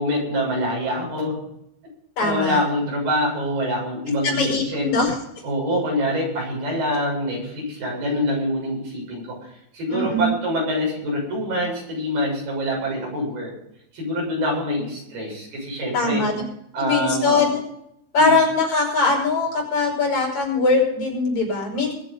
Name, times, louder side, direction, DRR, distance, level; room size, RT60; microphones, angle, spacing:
voice 1, 0.0-1.4 2.2-4.9 5.4-13.5 13.9-16.2 16.7-17.4 18.2-18.3, equal, 85° right, -2 dB, 9.3 m, -25 dB
voice 2, 2.2-2.6 4.2-5.1 9.9-10.3 15.9-16.4 16.8-17.6 18.1-21.9, left 3 dB, 50° left, 0 dB, 6.8 m, -21 dB
22.0 x 8.9 x 5.6 m, 0.75 s
omnidirectional pair, 4.4 m